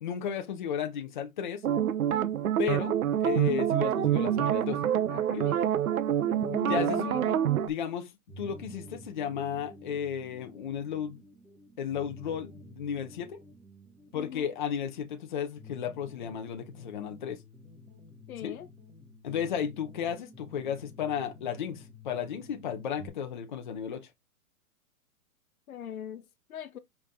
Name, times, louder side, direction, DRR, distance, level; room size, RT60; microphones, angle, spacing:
voice 1, 0.0-1.6 2.6-4.8 5.3-5.4 6.7-7.1 7.6-8.1 8.4-11.2 11.8-13.4 14.1-17.4 18.4-18.5 19.2-24.1, left 8 dB, 35° left, 0.9 m, -34 dB
sound 1, 1.6-7.7, right 10 dB, 70° right, 0.9 m, -27 dB
voice 2, 5.1-5.7 6.2-7.4 14.1-14.5 18.3-18.7 25.7-26.2 26.5-26.8, left 10 dB, 70° left, 1.0 m, -39 dB
sound 2, 8.3-23.1, left 1 dB, ahead, 1.2 m, -51 dB
5.6 x 4.9 x 3.7 m
hypercardioid pair, 175°, 44 cm